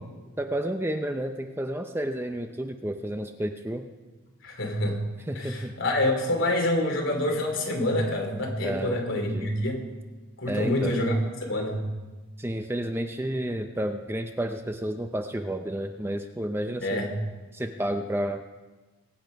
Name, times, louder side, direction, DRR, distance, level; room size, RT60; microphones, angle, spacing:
voice 1, 0.4-3.8 5.3-5.7 8.6-9.5 10.5-11.0 12.4-17.0 17.5-18.4, right 1 dB, 10° right, 6 dB, 0.6 m, -31 dB
voice 2, 4.4-5.0 5.3-9.8 10.4-11.1 11.4-11.8 16.8-17.1, left 1 dB, 60° left, 2 dB, 3.2 m, -27 dB
22.0 x 8.8 x 5.2 m, 1.2 s
head